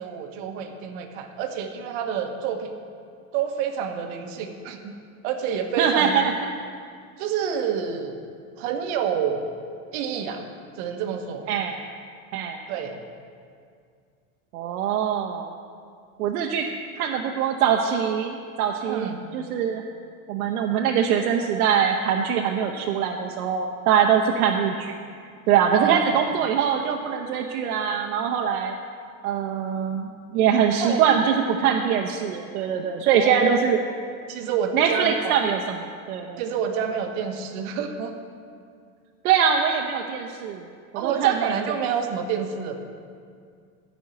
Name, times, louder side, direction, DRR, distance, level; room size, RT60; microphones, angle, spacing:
voice 1, 0.0-2.7 3.3-4.9 5.2-6.1 7.2-8.3 8.6-9.4 9.9-10.5 10.7-11.5 12.7-13.0 18.9-19.2 25.8-26.2 30.8-31.0 33.2-33.4 34.3-35.4 36.4-38.2 40.9-42.8, right 7 dB, 50° right, 5 dB, 1.2 m, -28 dB
voice 2, 5.8-6.5 11.5-11.8 12.3-12.6 14.5-15.5 16.2-19.8 20.3-25.0 25.5-28.7 29.2-33.8 34.7-35.8 36.1-36.4 39.2-40.7 40.9-41.5, right 8 dB, 85° right, 1 dB, 0.9 m, -23 dB
12.0 x 5.5 x 7.7 m, 2.2 s
supercardioid pair, 150°, 43 cm